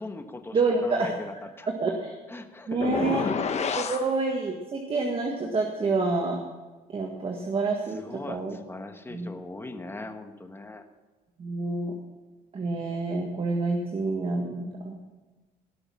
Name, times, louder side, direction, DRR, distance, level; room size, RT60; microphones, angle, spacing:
voice 1, 0.0-1.7 2.3-3.3 7.9-10.8, left 2 dB, 15° left, 7 dB, 1.2 m, -40 dB
voice 2, 0.5-1.1 1.8-2.1 2.7-3.3 3.7-6.4 6.9-8.6 9.1-9.3 11.4-11.9 12.5-15.0, right 3 dB, 35° right, 2 dB, 1.6 m, -28 dB
sound 1, 2.8-4.1, left 6 dB, 40° left, 1.1 m, -28 dB
18.0 x 6.4 x 6.2 m, 1.2 s
cardioid pair, 110°, 17 cm